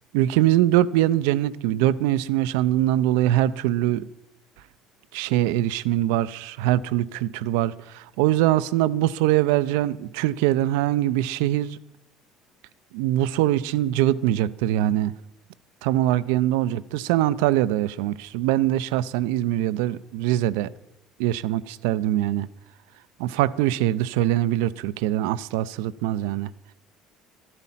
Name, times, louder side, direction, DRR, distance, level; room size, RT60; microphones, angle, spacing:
voice 1, 0.1-4.1 5.1-11.8 12.9-15.1 15.8-20.7 21.2-22.5 23.2-26.5, right 14 dB, 75° right, 0.4 m, -23 dB
13.0 x 11.0 x 5.7 m
hypercardioid pair, 65°, 0 cm